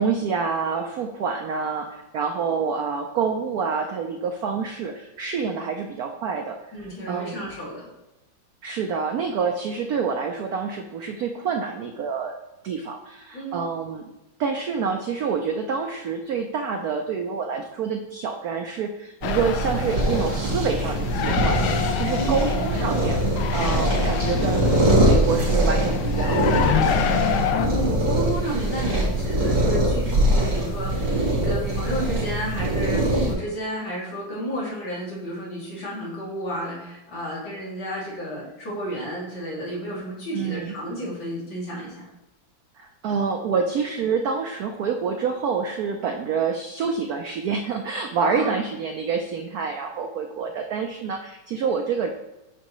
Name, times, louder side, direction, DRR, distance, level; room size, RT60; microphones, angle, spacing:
voice 1, 0.0-6.6 7.1-7.5 8.6-12.3 12.6-21.6 22.0-23.2 23.5-24.7 25.0-27.1 40.3-40.7 42.8-52.1, right 5 dB, 80° right, 4 dB, 0.8 m, -27 dB
voice 2, 6.7-7.9 13.3-13.6 22.2-22.9 27.5-42.0 48.2-48.7, equal, 65° left, -6 dB, 3.0 m, -32 dB
sound 1, 19.2-27.7, left 8 dB, 80° left, 1.4 m, -27 dB
sound 2, 19.2-33.3, right 1 dB, 60° right, 2.9 m, -23 dB
7.7 x 6.4 x 3.1 m, 0.96 s
omnidirectional pair, 2.2 m